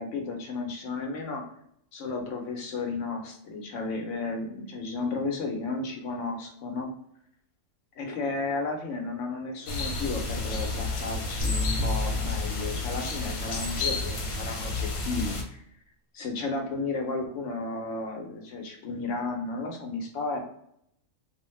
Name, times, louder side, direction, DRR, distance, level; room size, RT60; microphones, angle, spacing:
voice 1, 0.0-1.4 1.9-6.9 8.0-15.4 16.1-20.4, left 3 dB, 70° left, 3 dB, 0.9 m, -33 dB
sound 1, 9.7-15.4, left 3 dB, 85° left, 1.1 m, -31 dB
sound 2, 11.4-13.5, left 3 dB, 60° right, 0.7 m, -31 dB
2.4 x 2.1 x 3.0 m, 0.72 s
omnidirectional pair, 1.4 m